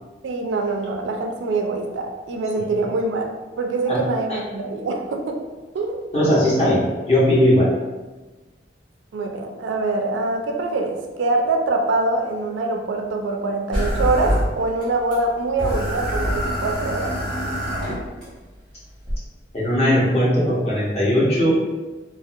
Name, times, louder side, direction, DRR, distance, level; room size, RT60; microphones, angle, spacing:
voice 1, 0.2-3.3 3.6-5.4 5.7-6.1 9.1-17.1, right 3 dB, 80° right, 2 dB, 0.3 m, -24 dB
voice 2, 6.1-7.7 19.5-21.6, equal, 35° left, -8 dB, 0.8 m, -18 dB
sound 1, 13.7-14.8 15.1-15.2 15.6-18.2 19.1-19.2, equal, 5° left, 0.8 m, -24 dB
2.4 x 2.1 x 2.6 m, 1.2 s
head